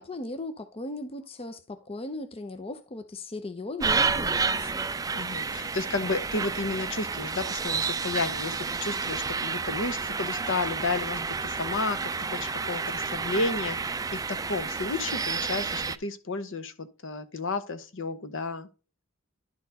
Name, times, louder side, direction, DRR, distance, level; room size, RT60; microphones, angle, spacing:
voice 1, 0.0-4.9, left 2 dB, 25° left, 0.6 m, -37 dB
sound 1, 3.8-16.0, right 5 dB, 15° right, 0.4 m, -30 dB
voice 2, 5.1-18.7, left 3 dB, 65° left, 0.9 m, -32 dB
11.0 x 4.4 x 4.0 m
head